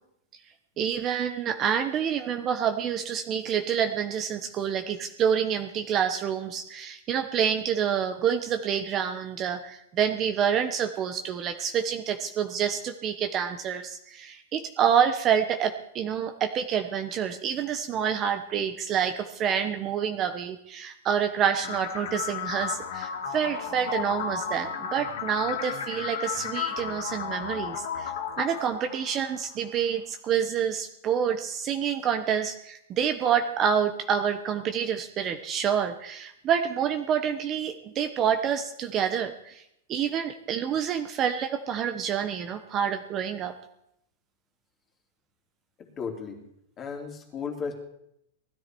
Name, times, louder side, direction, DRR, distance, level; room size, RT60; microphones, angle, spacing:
voice 1, 0.8-39.6 39.9-43.6, right 8 dB, 25° right, 7 dB, 1.1 m, -27 dB
sound 1, 21.6-29.6, left 7 dB, 70° left, 2.8 m, -34 dB
voice 2, 45.8-46.4 46.8-47.8, left 5 dB, 25° left, 2 dB, 3.2 m, -35 dB
19.5 x 13.0 x 4.6 m, 0.77 s
supercardioid pair, 155°, 0 cm